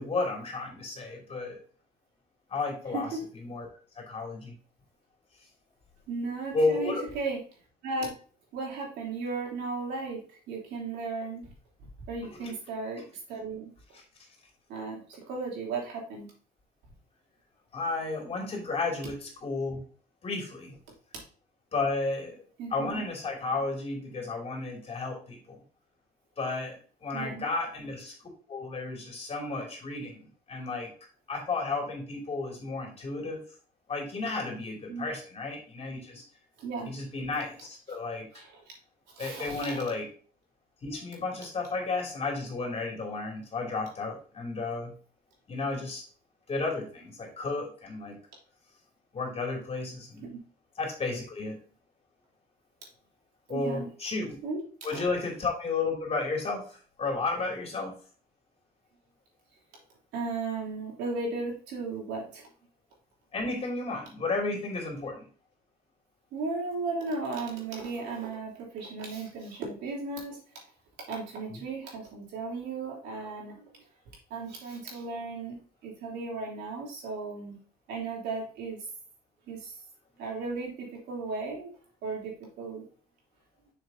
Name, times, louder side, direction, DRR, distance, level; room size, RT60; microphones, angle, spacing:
voice 1, 0.0-1.6 2.5-3.1 3.4-3.7 4.0-4.5 6.5-7.0 12.2-12.5 13.9-14.0 17.7-19.8 20.2-20.8 21.7-22.4 22.7-25.6 26.4-30.9 31.3-33.4 33.9-36.2 36.8-38.3 39.2-40.1 40.8-44.9 45.5-46.0 46.5-48.2 49.1-50.2 50.8-51.6 53.5-54.4 54.8-57.9 63.3-65.2, left 3 dB, 35° left, 0 dB, 2.8 m, -33 dB
voice 2, 6.1-7.4 7.8-8.1 8.5-11.4 12.1-13.7 14.7-16.3 22.6-23.1 27.1-27.5 34.9-35.1 36.6-36.9 38.3-38.5 39.1-39.8 53.5-53.9 54.4-54.6 54.9-55.0 60.1-62.5 66.3-70.4 71.1-73.7 74.3-75.6 75.8-77.6 77.9-78.8 79.5-79.8 80.2-81.7 82.0-82.8, right 3 dB, 80° right, -3 dB, 3.4 m, -35 dB
6.6 x 6.6 x 2.8 m, 0.41 s
cardioid pair, 110°, 17 cm